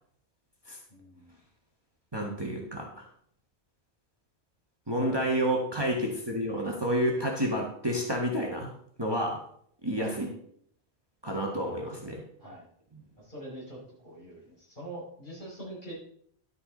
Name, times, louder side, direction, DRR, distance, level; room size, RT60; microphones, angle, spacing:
voice 1, 0.9-1.4 5.0-5.2 5.8-5.9 10.0-10.1 11.8-11.9 12.4-12.7 13.2-15.9, right 1 dB, 45° left, -6 dB, 5.7 m, -44 dB
voice 2, 2.1-3.1 4.9-8.7 9.0-9.4 9.8-10.3 11.2-12.2, equal, 20° right, -1 dB, 1.6 m, -29 dB
11.5 x 8.3 x 3.9 m, 0.65 s
omnidirectional pair, 1.1 m